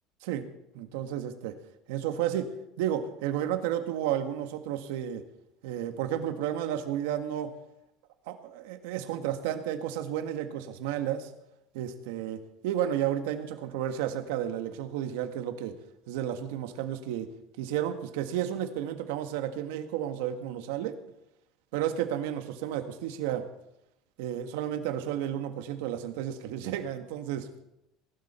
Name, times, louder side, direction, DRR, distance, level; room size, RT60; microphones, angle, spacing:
voice 1, 0.7-1.6 1.9-5.2 5.6-7.5 8.3-11.3 11.7-15.8 16.1-17.3 17.6-21.0 21.7-23.5 24.2-27.5, right 10 dB, 85° right, 8 dB, 1.5 m, -32 dB
20.0 x 12.5 x 4.4 m, 0.87 s
supercardioid pair, 110°, 0 cm